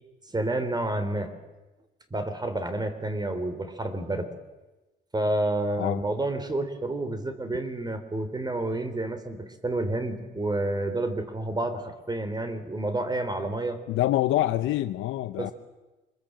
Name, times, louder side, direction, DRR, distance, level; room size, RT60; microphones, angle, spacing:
voice 1, 0.2-1.3 2.1-4.3 5.1-13.8 15.4-15.5, right 2 dB, 20° right, 10 dB, 3.4 m, -29 dB
voice 2, 13.9-15.5, left 14 dB, 85° left, 10 dB, 0.7 m, -26 dB
25.0 x 21.5 x 7.6 m, 1.1 s
cardioid pair, 90°, 20 cm